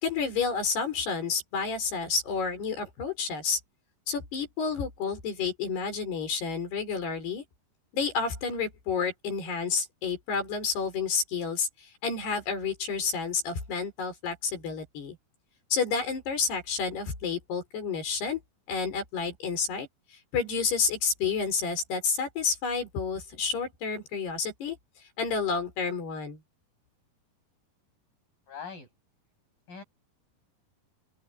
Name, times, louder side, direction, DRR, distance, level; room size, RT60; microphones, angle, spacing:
voice 1, 0.0-3.6 4.1-7.4 7.9-15.2 15.7-18.4 18.7-19.9 20.3-24.8 25.2-26.4, left 5 dB, 85° left, 7.9 m, -30 dB
voice 2, 28.5-28.9 29.7-29.8, left 6 dB, 60° left, 9.8 m, -41 dB
open air
omnidirectional pair, 4.5 m